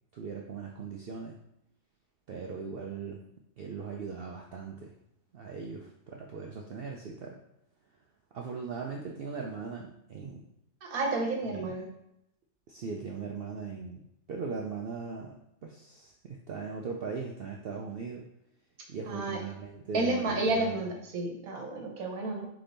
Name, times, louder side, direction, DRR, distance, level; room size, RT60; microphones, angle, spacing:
voice 1, 0.1-1.4 2.3-3.2 3.6-4.9 5.3-7.4 8.3-10.4 11.5-11.7 12.7-14.0 14.3-18.2 18.9-20.9, right 5 dB, 70° right, 0 dB, 0.5 m, -39 dB
voice 2, 10.8-11.9 19.1-19.4 19.9-22.5, right 2 dB, 90° right, 1 dB, 1.4 m, -31 dB
3.8 x 3.4 x 3.9 m, 0.79 s
omnidirectional pair, 1.5 m